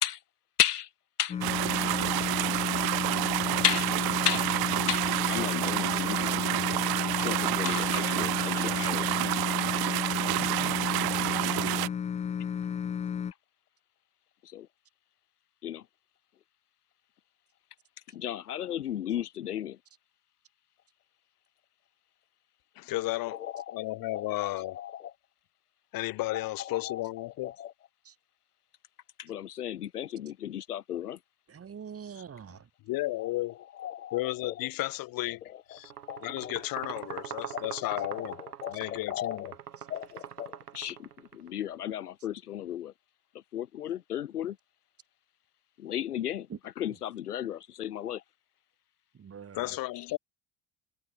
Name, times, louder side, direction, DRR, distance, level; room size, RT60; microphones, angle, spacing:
voice 1, 0.6-0.9 1.2-1.4 3.6-3.9 4.2-4.5 4.9-6.4 7.2-9.2 10.1-10.2 14.4-14.7 15.6-15.9 18.1-19.8 23.2-23.8 24.1-25.1 26.3-27.0 27.4-27.7 29.2-31.2 33.2-33.3 33.7-34.7 35.5-35.8 36.1-36.5 37.5-39.6 39.9-42.9 43.5-44.6 45.8-46.5 46.8-48.2 49.9-50.1, left 11 dB, 75° left, 1.1 m, -34 dB
sound 1, 1.3-13.3, left 7 dB, 15° left, 0.5 m, -33 dB
sound 2, 1.4-11.9, right 20 dB, 50° right, 1.7 m, -29 dB
voice 2, 22.8-23.4 23.7-24.8 25.9-27.5 32.9-33.6 34.1-35.4 35.7-35.9 36.2-38.3 38.7-39.5 49.5-50.2, left 18 dB, 45° left, 1.2 m, -33 dB
voice 3, 31.5-32.7 46.5-46.6 49.1-49.8, right 7 dB, 30° right, 3.4 m, -44 dB
sound 3, 35.8-41.5, right 9 dB, 80° right, 1.3 m, -43 dB
figure-of-eight pair, 55°, 46 cm